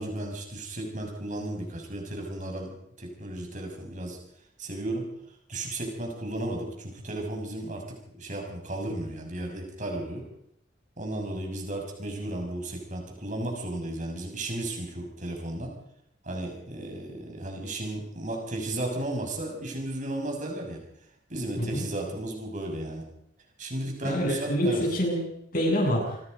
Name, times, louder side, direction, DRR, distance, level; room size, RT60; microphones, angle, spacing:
voice 1, 0.0-2.7 3.0-4.2 4.6-5.0 5.5-7.8 8.1-10.3 11.0-15.7 16.2-20.8 21.3-23.1 23.6-24.8, right 1 dB, 40° right, 1 dB, 6.2 m, -34 dB
voice 2, 24.0-25.2 25.5-26.1, equal, 50° left, 1 dB, 8.0 m, -26 dB
28.0 x 23.0 x 5.3 m, 0.70 s
head